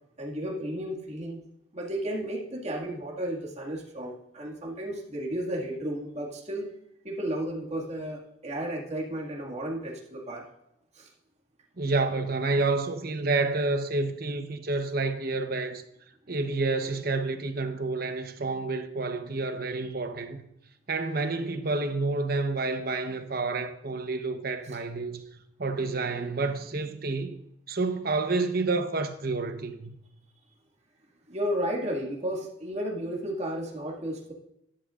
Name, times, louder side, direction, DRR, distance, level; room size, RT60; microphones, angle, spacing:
voice 1, 0.2-1.4 1.7-6.7 7.0-10.4 10.9-11.1 31.3-34.3, right 1 dB, 35° right, 2.1 m, -33 dB
voice 2, 11.8-15.8 16.3-20.4 20.9-25.2 25.6-27.4 27.7-29.9, right 3 dB, 50° right, 1.0 m, -29 dB
13.5 x 11.5 x 2.5 m
head